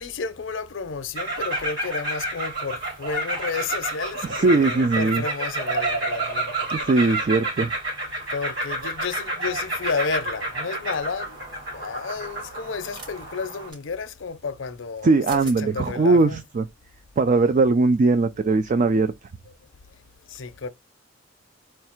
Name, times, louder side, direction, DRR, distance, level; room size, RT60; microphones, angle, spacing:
voice 1, 0.0-6.5 8.3-11.4 11.7-16.4 20.3-20.7, left 5 dB, 70° left, 0.6 m, -31 dB
sound 1, 1.2-13.7, right 2 dB, 65° right, 3.4 m, -29 dB
voice 2, 4.4-5.2 6.7-7.7 15.0-16.3 16.6-16.7 17.2-19.1, right 3 dB, 40° right, 0.4 m, -19 dB
sound 2, 10.9-11.1 12.8-13.1 13.7-13.8 15.0-15.1 15.3-15.6, right 2 dB, 25° right, 0.9 m, -41 dB
4.5 x 2.4 x 4.4 m
head